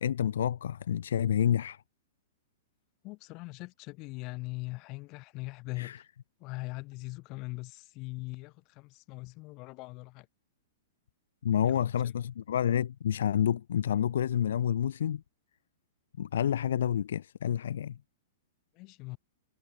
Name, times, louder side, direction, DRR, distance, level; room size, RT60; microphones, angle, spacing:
voice 1, 0.0-1.8 5.8-6.0 11.4-15.2 16.2-18.0, left 9 dB, 80° left, 0.4 m, -29 dB
voice 2, 3.0-6.1 6.4-10.3 11.6-12.1 18.7-19.2, left 24 dB, 35° left, 2.5 m, -41 dB
hypercardioid pair, 140°, 0 cm